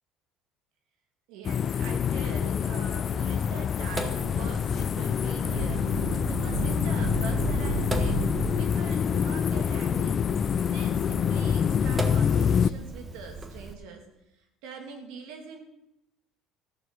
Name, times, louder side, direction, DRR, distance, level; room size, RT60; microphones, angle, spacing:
voice 1, 1.3-8.2 8.6-10.2 10.6-14.1 14.3-15.6, right 5 dB, 85° right, 4 dB, 2.5 m, -43 dB
sound 1, 1.4-12.7, left 7 dB, 35° left, 0.4 m, -26 dB
Sink (filling or washing), 3.8-13.7, right 2 dB, 15° right, 1.3 m, -39 dB
sound 2, 5.4-9.2, right 4 dB, 65° right, 2.5 m, -33 dB
14.0 x 7.4 x 6.3 m, 0.87 s
cardioid pair, 140°, 0 cm